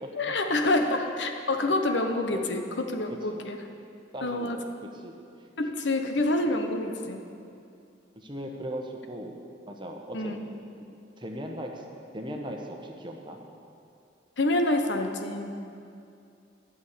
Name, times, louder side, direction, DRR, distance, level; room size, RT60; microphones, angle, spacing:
voice 1, 0.1-3.6 4.2-4.6 5.6-7.2 10.1-10.4 14.4-15.6, left 2 dB, 75° left, 5 dB, 1.0 m, -27 dB
voice 2, 4.1-4.7 5.0-5.5 8.1-10.4 11.2-11.8 12.1-13.4, equal, 25° right, 2 dB, 1.0 m, -38 dB
13.0 x 6.3 x 8.5 m, 2.5 s
head